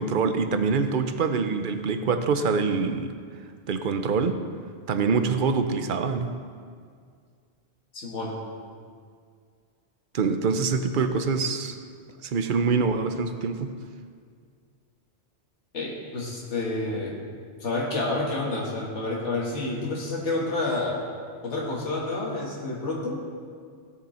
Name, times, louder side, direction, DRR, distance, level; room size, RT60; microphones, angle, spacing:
voice 1, 0.0-3.1 3.7-4.4 4.9-6.3 10.1-11.7 12.2-13.7, right 4 dB, 50° right, 8 dB, 0.8 m, -25 dB
voice 2, 7.9-8.4 15.7-17.2 17.6-21.0 21.4-23.2, left 2 dB, 90° left, -3 dB, 1.8 m, -29 dB
17.0 x 6.9 x 4.3 m, 2.1 s
omnidirectional pair, 1.2 m